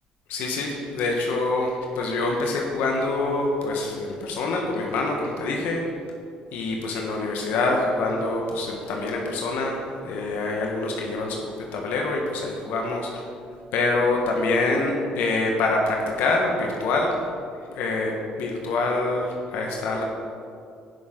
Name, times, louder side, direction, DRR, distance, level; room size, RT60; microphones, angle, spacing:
voice 1, 0.3-5.8 6.5-13.2 13.7-17.2 17.7-20.1, left 2 dB, 80° left, 0 dB, 1.3 m, -25 dB
15.5 x 6.4 x 3.8 m, 2.4 s
supercardioid pair, 80°, 3 cm